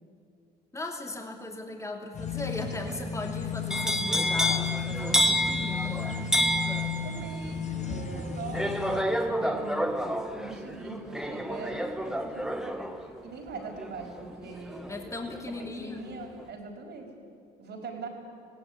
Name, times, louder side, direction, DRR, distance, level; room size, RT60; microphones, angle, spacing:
voice 1, 0.7-6.3 14.9-16.0, left 2 dB, 15° left, 2 dB, 2.8 m, -38 dB
sound 1, 2.1-9.0, left 6 dB, 35° left, 2.3 m, -34 dB
sound 2, 3.7-15.7 16.0-16.4, equal, 5° right, 1.8 m, -30 dB
voice 2, 6.7-9.9 10.3-14.8 15.6-17.1 17.6-18.1, right 4 dB, 60° right, 3 dB, 5.0 m, -42 dB
19.0 x 16.5 x 9.8 m, 2.5 s
cardioid pair, 90°, 20 cm